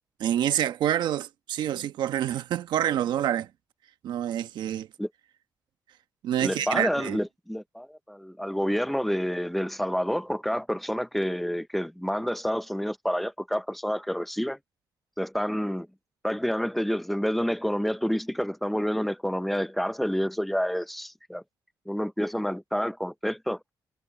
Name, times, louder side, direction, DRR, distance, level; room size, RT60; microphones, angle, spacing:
voice 1, 0.2-3.5 4.0-4.9 6.2-7.2, right 11 dB, 85° right, 1.2 m, -27 dB
voice 2, 6.4-14.6 15.2-15.9 16.2-21.4 21.9-23.6, equal, ahead, 0.5 m, -28 dB
cardioid pair, 155°, 7 cm